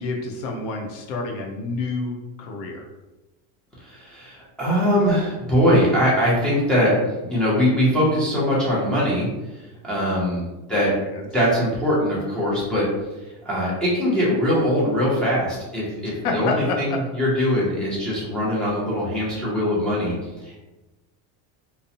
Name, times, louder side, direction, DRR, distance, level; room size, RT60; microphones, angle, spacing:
voice 1, 0.0-2.9 10.7-11.2 16.0-17.0, left 3 dB, 85° left, 1 dB, 0.7 m, -29 dB
voice 2, 3.8-9.3 9.8-10.4 10.7-10.9 11.3-12.9 13.4-20.1 20.4-20.6, equal, ahead, -9 dB, 0.3 m, -21 dB
2.5 x 2.0 x 2.6 m, 1.1 s
cardioid pair, 140°, 49 cm